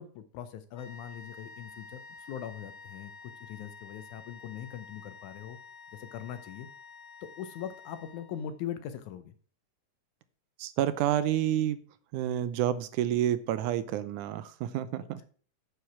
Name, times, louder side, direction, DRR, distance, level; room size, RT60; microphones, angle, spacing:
voice 1, 0.0-2.0 2.3-5.6 5.9-6.7 7.2-9.3, left 9 dB, 75° left, 12 dB, 2.0 m, -41 dB
sound 1, 0.8-8.6, left 5 dB, 60° left, 2.9 m, -50 dB
voice 2, 10.6-11.8 12.1-15.2, right 11 dB, 80° right, 13 dB, 2.1 m, -29 dB
9.4 x 4.9 x 5.9 m, 0.43 s
omnidirectional pair, 3.6 m